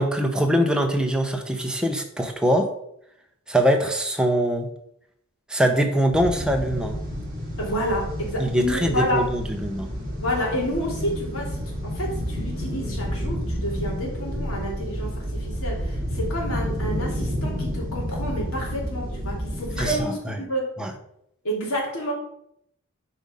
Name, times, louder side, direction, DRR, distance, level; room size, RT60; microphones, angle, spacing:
voice 1, 0.0-2.7 3.5-4.7 5.5-7.0 8.4-9.9 19.8-20.4 20.8-20.9, equal, 5° right, 3 dB, 0.8 m, -23 dB
sound 1, 6.1-20.0, equal, 40° right, 3.6 m, -30 dB
voice 2, 7.6-9.2 10.2-20.7 21.4-22.1, equal, 75° left, -2 dB, 2.9 m, -29 dB
7.9 x 4.8 x 5.5 m, 0.73 s
head